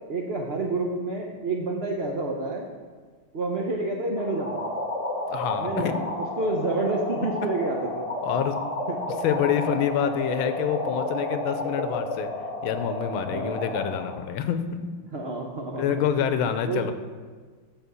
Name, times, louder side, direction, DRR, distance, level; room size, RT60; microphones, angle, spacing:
voice 1, 0.1-2.7 3.3-4.6 5.6-8.1 8.9-9.0 9.3-9.4 13.3-13.6 15.1-16.0 16.6-16.9, right 2 dB, 85° right, 0 dB, 0.5 m, -29 dB
sound 1, 4.2-14.1, left 1 dB, 20° left, 1.0 m, -31 dB
voice 2, 5.3-5.9 8.2-8.6 9.2-12.3 12.6-14.8 15.8-16.9, left 8 dB, 80° left, 9 dB, 1.4 m, -26 dB
10.5 x 4.0 x 6.9 m, 1.5 s
omnidirectional pair, 2.3 m